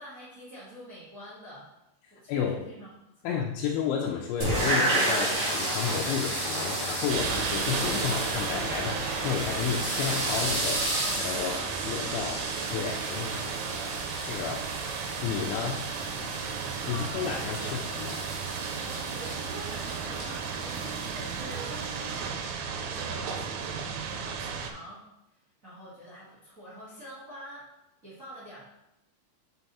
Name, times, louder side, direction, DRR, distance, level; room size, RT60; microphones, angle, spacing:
voice 1, 0.0-1.7 2.1-2.9 3.2-3.4 10.7-14.0 16.0-16.2 16.5-18.0 19.1-25.0 25.6-27.7 28.0-28.6, equal, 70° right, -9 dB, 0.7 m, -46 dB
voice 2, 2.3-2.6 3.2-10.8 11.2-11.6 11.9-12.4 12.7-13.4 14.1-14.6 15.2-15.8 16.9-18.2, left 7 dB, 85° left, -1 dB, 3.0 m, -31 dB
sound 1, 4.4-22.3, right 1 dB, 40° right, 2.0 m, -33 dB
sound 2, 5.3-10.4, left 1 dB, 55° left, 1.5 m, -40 dB
sound 3, 7.1-24.7, right 6 dB, 90° right, 3.1 m, -34 dB
6.5 x 4.7 x 4.1 m, 0.87 s
omnidirectional pair, 5.4 m